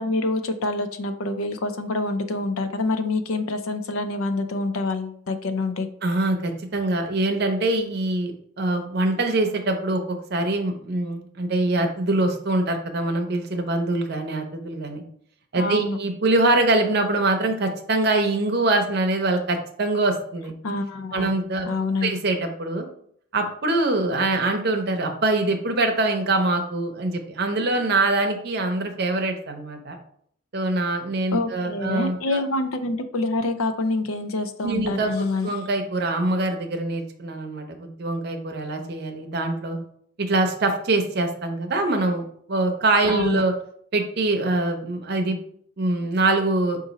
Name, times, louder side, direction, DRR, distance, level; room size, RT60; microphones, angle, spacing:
voice 1, 0.0-5.9 15.6-16.0 20.6-21.3 21.7-22.2 31.3-35.5 43.1-43.4, left 2 dB, 80° left, 8 dB, 0.5 m, -26 dB
voice 2, 6.0-10.0 10.3-15.0 15.5-20.5 21.1-21.7 22.0-22.8 23.3-30.0 30.5-32.4 34.6-35.1 35.4-39.8 40.2-43.5 43.9-45.4 45.8-46.8, right 2 dB, 50° right, 4 dB, 0.6 m, -24 dB
5.0 x 2.6 x 4.0 m, 0.63 s
head